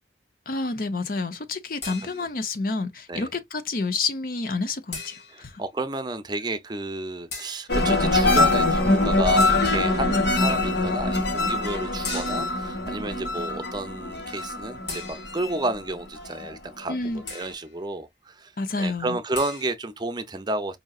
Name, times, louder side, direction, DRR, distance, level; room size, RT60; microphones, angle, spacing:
voice 1, 0.5-5.6 16.9-17.2 18.6-19.2, left 3 dB, 50° left, 0.7 m, -29 dB
sound 1, 1.8-2.5 4.9-5.6 7.3-7.7 9.4-10.0 12.0-12.7 14.9-15.6 17.3-17.7 19.3-19.7, left 3 dB, 70° left, 2.2 m, -38 dB
voice 2, 5.3-17.0 17.3-18.5 18.8-20.8, right 2 dB, 25° right, 0.5 m, -31 dB
sound 2, 7.7-16.5 16.9-17.4, left 2 dB, 90° left, 1.5 m, -23 dB
5.2 x 2.7 x 2.4 m
head